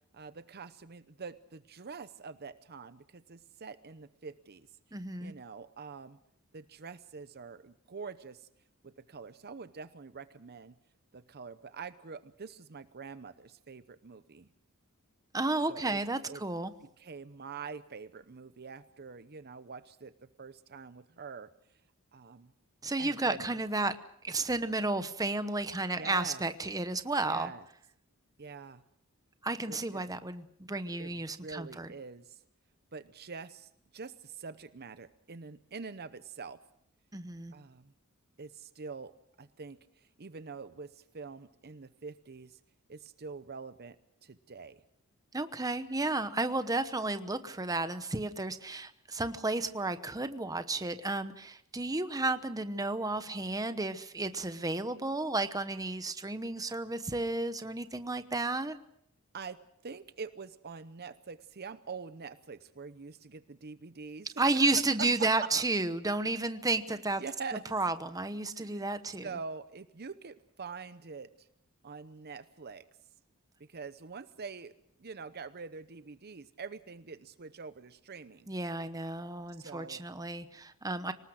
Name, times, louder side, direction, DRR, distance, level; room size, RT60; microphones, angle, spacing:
voice 1, 0.1-4.7 5.2-6.2 6.5-8.5 8.8-10.7 11.1-14.5 15.7-16.0 16.3-16.4 17.0-21.5 22.1-22.5 23.0-23.5 26.0-26.4 27.2-27.6 28.4-28.8 29.7-30.0 31.0-32.4 32.9-36.6 37.5-37.9 38.4-42.6 42.9-44.0 44.2-44.8 59.3-64.7 65.0-65.6 66.9-67.6 68.6-68.9 69.2-71.5 71.8-72.8 73.6-74.7 75.0-78.5 79.6-80.0, right 5 dB, 45° right, 13 dB, 0.8 m, -45 dB
voice 2, 4.9-5.3 15.3-16.7 22.8-23.9 24.2-27.5 29.4-31.9 37.1-37.5 45.3-58.8 64.4-67.2 67.7-69.3 78.5-81.1, right 2 dB, 15° right, 11 dB, 1.0 m, -32 dB
25.0 x 19.0 x 6.4 m, 0.71 s
head